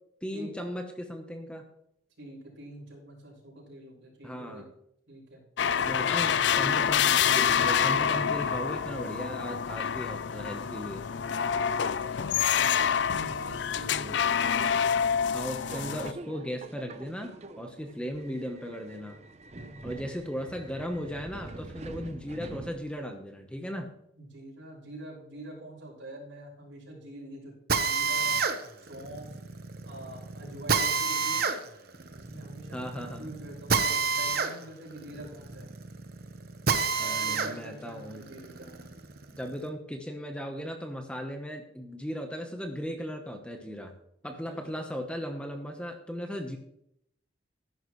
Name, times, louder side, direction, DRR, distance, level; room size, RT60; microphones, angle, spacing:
voice 1, 0.2-1.6 4.2-4.6 5.8-11.0 14.0-14.2 15.3-19.2 19.8-23.9 32.7-33.3 37.0-38.2 39.3-43.9 44.2-46.6, equal, 5° left, 4 dB, 1.0 m, -37 dB
voice 2, 2.2-4.7 5.1-5.4 11.5-14.5 17.7-18.0 19.5-20.2 24.2-28.4 28.8-29.4 29.8-31.5 32.1-35.7 37.0-38.9 44.3-44.7, right 1 dB, 75° right, -3 dB, 5.6 m, -46 dB
sound 1, 5.6-16.1, left 7 dB, 65° left, 0.4 m, -27 dB
Subway metro underground, 15.6-23.2, right 2 dB, 35° right, 0.7 m, -45 dB
Drill, 27.7-37.5 38.0-39.6, right 5 dB, 50° right, 1.0 m, -29 dB
14.0 x 11.0 x 3.2 m, 0.75 s
head